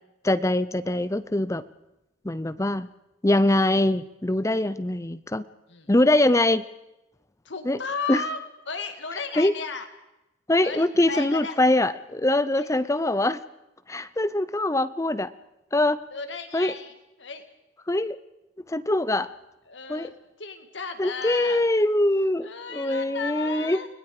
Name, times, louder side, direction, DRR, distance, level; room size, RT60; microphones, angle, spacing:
voice 1, 0.2-1.6 2.2-2.9 3.2-5.5 5.9-6.6 7.6-7.8 8.1-8.2 9.4-9.5 10.5-13.4 13.9-15.3 15.7-16.0 16.5-16.7 17.9-18.2 18.7-19.3 19.9-20.1 21.0-23.8, left 1 dB, 15° left, 14 dB, 0.6 m, -23 dB
voice 2, 7.5-8.4 8.7-9.9 10.6-11.6 12.6-12.7 16.1-17.5 19.7-21.6 22.4-23.9, left 4 dB, 70° left, 7 dB, 2.0 m, -34 dB
29.5 x 20.5 x 4.9 m, 0.93 s
head